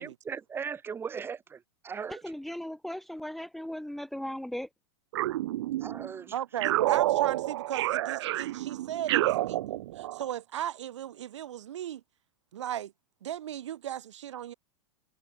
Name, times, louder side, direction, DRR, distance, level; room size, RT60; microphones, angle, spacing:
voice 1, 0.0-2.4 5.8-6.3, right 6 dB, 15° right, 7.7 m, -38 dB
voice 2, 2.2-4.7, left 1 dB, ahead, 1.2 m, -37 dB
sound 1, 5.1-6.1 6.6-10.3, right 15 dB, 65° right, 2.6 m, -29 dB
voice 3, 6.3-9.6 9.9-12.0 12.5-12.9 13.2-14.5, right 11 dB, 85° right, 5.0 m, -36 dB
supercardioid pair, 150°, 15 cm